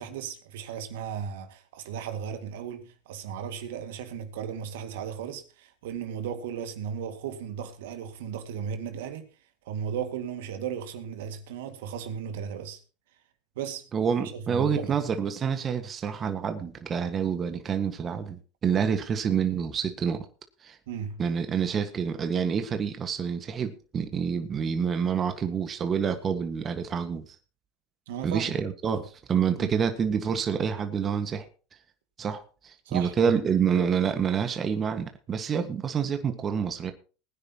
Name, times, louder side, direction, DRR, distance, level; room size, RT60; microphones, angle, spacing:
voice 1, 0.0-9.3 9.7-12.8 13.6-13.9 14.1-15.0 20.9-21.2 28.1-28.6 29.6-29.8 32.9-33.4, right 8 dB, 75° right, 2.2 m, -36 dB
voice 2, 13.9-20.2 20.6-20.8 21.2-27.2 28.2-31.5 32.2-36.9, right 7 dB, 35° right, 1.7 m, -27 dB
20.5 x 9.9 x 3.0 m
hypercardioid pair, 90°, 0 cm